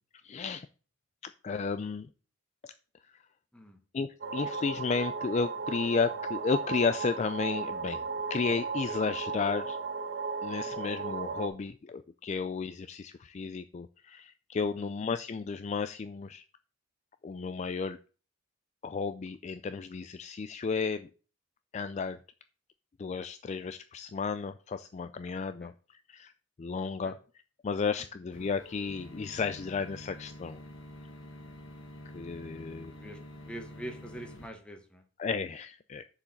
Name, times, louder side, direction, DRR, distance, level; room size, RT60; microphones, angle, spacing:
voice 1, 0.2-0.7 1.2-2.1 2.6-2.7 3.9-8.0 8.3-9.8 10.4-16.4 17.2-18.0 18.8-21.1 21.7-22.2 23.0-26.3 26.6-27.2 27.6-30.6 32.1-32.9 35.2-36.0, left 5 dB, 35° left, 10 dB, 0.3 m, -33 dB
sound 1, 4.2-11.5, right 4 dB, 50° right, 1.2 m, -35 dB
sound 2, 28.3-34.5, left 1 dB, 60° left, 1.6 m, -48 dB
voice 2, 33.5-35.0, right 1 dB, 5° left, 5 dB, 1.2 m, -44 dB
6.9 x 4.9 x 6.5 m, 0.38 s
head